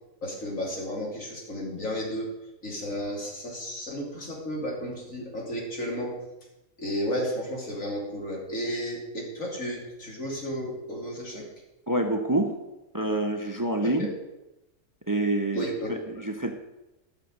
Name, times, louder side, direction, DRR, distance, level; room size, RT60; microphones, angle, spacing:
voice 1, 0.2-2.3 2.6-6.1 6.8-11.4 13.8-14.1 15.5-15.9, equal, 85° left, -2 dB, 3.3 m, -33 dB
voice 2, 11.9-12.5 12.9-14.1 15.1-16.5, right 2 dB, 15° right, 4 dB, 0.8 m, -27 dB
12.5 x 6.4 x 6.4 m, 0.98 s
omnidirectional pair, 1.4 m